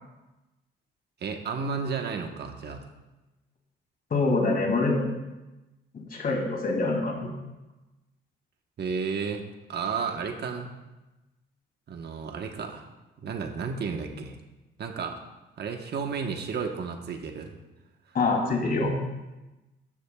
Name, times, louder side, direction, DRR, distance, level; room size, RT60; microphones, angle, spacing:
voice 1, 1.2-2.9 8.8-9.4 9.7-10.7 11.9-12.9 13.2-14.4 14.8-15.2 15.6-17.5, right 5 dB, 55° right, 4 dB, 1.2 m, -32 dB
voice 2, 4.1-5.0 5.9-7.3 18.1-19.0, left 3 dB, 50° left, 0 dB, 3.0 m, -25 dB
13.5 x 10.5 x 2.4 m, 1.0 s
cardioid pair, 90°, 20 cm